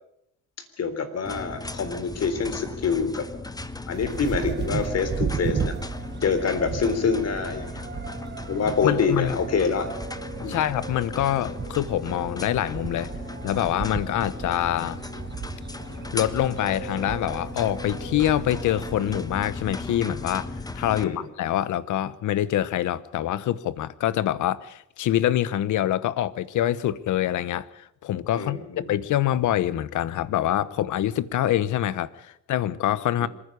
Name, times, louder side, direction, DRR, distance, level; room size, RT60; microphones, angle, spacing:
voice 1, 0.8-3.3 3.9-5.7 6.2-7.9 8.5-9.9 10.4-10.6 21.0-21.2 28.3-28.9 33.2-33.3, left 5 dB, 55° left, 10 dB, 3.7 m, -26 dB
sound 1, 1.2-21.0, left 3 dB, 10° left, 1.2 m, -37 dB
sound 2, 3.9-19.3, right 6 dB, 35° right, 1.3 m, -35 dB
voice 2, 8.8-9.4 10.5-13.1 13.4-15.0 16.1-33.3, left 12 dB, 75° left, 18 dB, 1.1 m, -25 dB
26.5 x 10.0 x 9.9 m, 0.79 s
cardioid pair, 90°, 30 cm